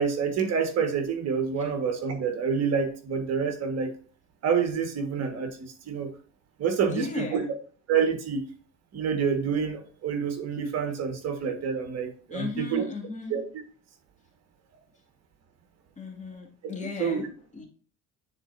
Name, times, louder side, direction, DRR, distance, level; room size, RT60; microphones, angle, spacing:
voice 1, 0.0-3.9 4.4-6.1 6.6-7.4 7.9-8.5 8.9-12.8 13.3-13.4 17.0-17.2, right 6 dB, 50° right, 6 dB, 1.6 m, -27 dB
voice 2, 6.8-7.5 12.3-13.4 16.0-17.7, left 3 dB, 20° left, 0 dB, 2.3 m, -35 dB
9.9 x 4.4 x 2.6 m, 0.42 s
cardioid pair, 105°, 32 cm